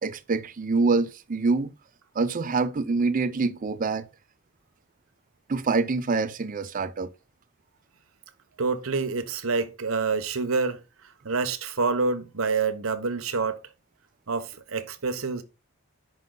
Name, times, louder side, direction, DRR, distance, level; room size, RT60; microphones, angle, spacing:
voice 1, 0.0-1.7 2.2-4.1 5.5-7.1, right 4 dB, 40° right, 0.5 m, -25 dB
voice 2, 8.6-10.8 11.2-13.6 14.3-15.4, right 4 dB, 75° right, 0.9 m, -27 dB
5.5 x 5.3 x 3.8 m
head